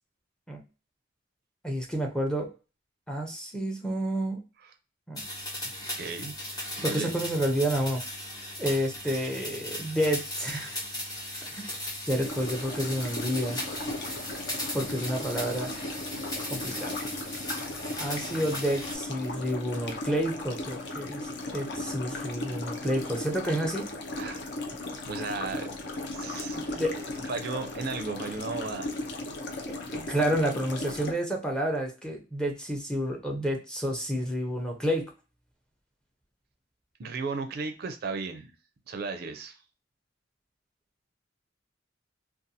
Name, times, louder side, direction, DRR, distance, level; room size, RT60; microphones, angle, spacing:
voice 1, 1.6-2.5 3.1-4.4 5.1-5.2 6.8-8.0 8.6-10.8 11.5-11.6 12.1-13.6 14.7-15.7 16.5-16.9 18.0-23.9 26.5-26.9 29.6-35.1, equal, 5° left, 0 dB, 0.5 m, -30 dB
sound 1, 5.2-19.0, left 1 dB, 20° left, 0.9 m, -37 dB
voice 2, 5.6-7.1 9.0-9.2 24.2-24.4 25.1-25.7 26.1-28.9 37.0-38.5 38.9-39.6, right 4 dB, 55° right, 8 dB, 0.4 m, -36 dB
sound 2, 12.2-31.1, left 2 dB, 60° left, 0.5 m, -37 dB
2.6 x 2.3 x 2.6 m, 0.32 s
head